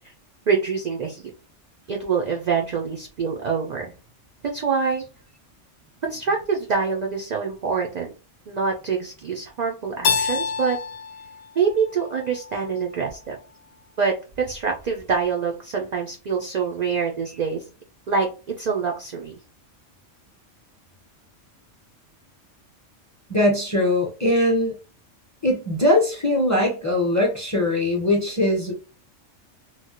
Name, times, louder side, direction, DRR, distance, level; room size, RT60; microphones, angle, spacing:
voice 1, 0.5-1.2 1.9-3.9 4.5-5.0 6.0-8.1 8.5-10.8 11.6-13.4 14.0-17.6 18.1-19.4, right 5 dB, 70° right, 1 dB, 0.4 m, -25 dB
Keyboard (musical), 10.0-12.9, left 6 dB, 65° left, 0.8 m, -28 dB
voice 2, 23.3-24.7 25.4-28.7, left 1 dB, 20° left, 0 dB, 0.5 m, -21 dB
3.1 x 2.1 x 2.8 m, 0.33 s
omnidirectional pair, 1.3 m